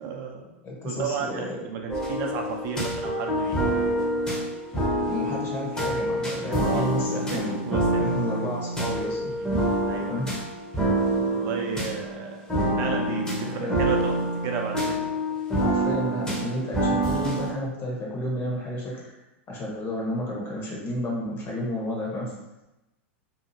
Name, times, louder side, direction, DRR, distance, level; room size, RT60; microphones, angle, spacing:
voice 1, 0.0-4.1 6.5-8.1 9.4-9.5 9.9-10.3 11.3-12.4 12.8-14.2 14.4-15.0 18.5-18.6, right 6 dB, 45° right, 2 dB, 0.5 m, -33 dB
voice 2, 0.6-1.6 5.1-7.6 8.0-9.3 10.1-10.3 13.6-13.8 15.6-19.1 19.5-22.3, left 1 dB, 35° left, -3 dB, 1.0 m, -31 dB
sound 1, 1.9-17.5, right 1 dB, 10° left, 0.8 m, -27 dB
2.8 x 2.4 x 2.7 m, 0.98 s
hypercardioid pair, 115°, 7 cm